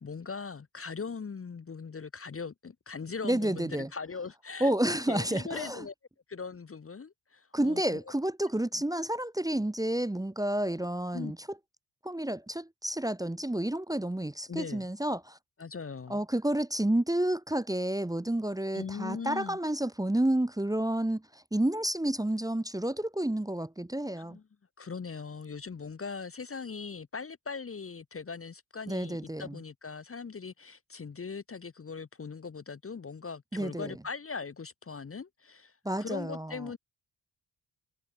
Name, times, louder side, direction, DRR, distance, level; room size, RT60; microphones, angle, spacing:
voice 1, 0.0-5.9 6.3-8.0 8.7-8.8 11.1-11.3 14.5-14.9 15.6-16.2 18.7-19.6 24.1-24.4 24.8-36.8, left 5 dB, 30° left, 1.0 m, -40 dB
voice 2, 3.2-3.9 4.6-5.9 7.5-11.4 12.0-15.4 16.1-24.4 28.9-29.6 33.5-33.9 35.8-36.7, right 1 dB, 10° right, 1.1 m, -30 dB
supercardioid pair, 55°, 45 cm